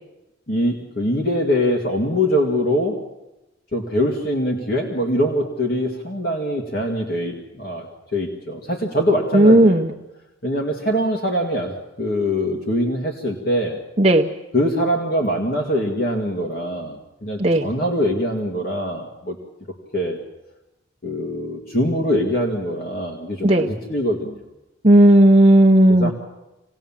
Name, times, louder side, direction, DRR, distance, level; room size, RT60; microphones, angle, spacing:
voice 1, 0.5-3.0 3.7-10.0 10.4-13.8 14.5-19.4 19.9-20.2 21.0-24.4 25.9-26.1, equal, 50° left, 1 dB, 2.3 m, -23 dB
voice 2, 9.3-9.9 14.0-14.3 17.4-17.6 23.4-23.7 24.8-26.1, right 1 dB, 30° right, 1 dB, 0.8 m, -13 dB
26.0 x 19.0 x 7.4 m, 0.97 s
head